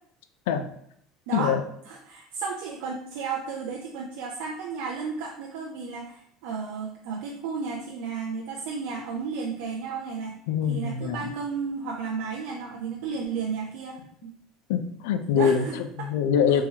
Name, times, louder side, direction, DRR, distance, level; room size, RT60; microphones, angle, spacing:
voice 1, 1.9-10.4 10.7-14.3 15.3-15.7 16.5-16.6, right 5 dB, 80° right, -2 dB, 0.5 m, -33 dB
voice 2, 10.5-11.3 14.7-16.6, left 7 dB, 85° left, 9 dB, 0.3 m, -24 dB
3.7 x 2.9 x 2.8 m, 0.69 s
supercardioid pair, 100°, 0 cm